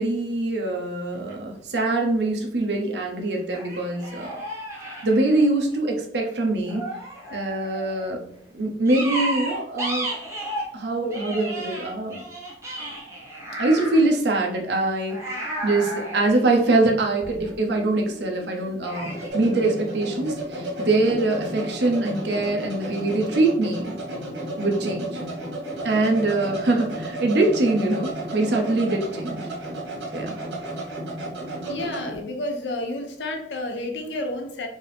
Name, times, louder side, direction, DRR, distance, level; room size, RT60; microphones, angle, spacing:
voice 1, 0.0-4.4 5.0-6.9 7.3-8.2 8.5-10.1 10.7-12.2 13.6-15.2 15.6-23.9 24.6-25.2 25.8-29.4 30.1-30.4, right 2 dB, 70° right, 1 dB, 0.9 m, -23 dB
sound 1, 1.1-1.3 3.5-5.8 6.7-8.1 8.9-10.7 11.1-14.1 15.1-17.3 18.8-19.3, right 1 dB, 15° right, 1.1 m, -33 dB
sound 2, 16.8-32.2, right 1 dB, 90° right, 1.5 m, -33 dB
voice 2, 31.6-34.7, left 1 dB, 85° left, 4 dB, 0.8 m, -30 dB
4.5 x 2.8 x 3.4 m, 0.69 s
head